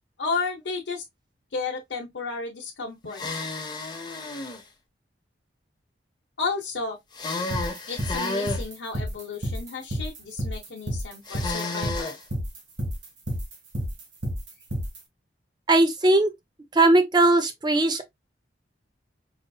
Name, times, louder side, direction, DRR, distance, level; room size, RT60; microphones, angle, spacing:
voice 1, 0.2-1.0 1.5-3.2 6.4-7.0 7.9-12.2, left 4 dB, 75° left, 0.8 m, -32 dB
sound 1, 3.1-4.6 7.1-8.6 11.3-12.2, left 3 dB, 25° left, 0.7 m, -31 dB
sound 2, 7.5-15.0, equal, 90° right, 1.4 m, -30 dB
voice 2, 15.7-16.3 16.7-18.0, right 2 dB, 25° right, 0.6 m, -19 dB
4.9 x 2.6 x 2.3 m
head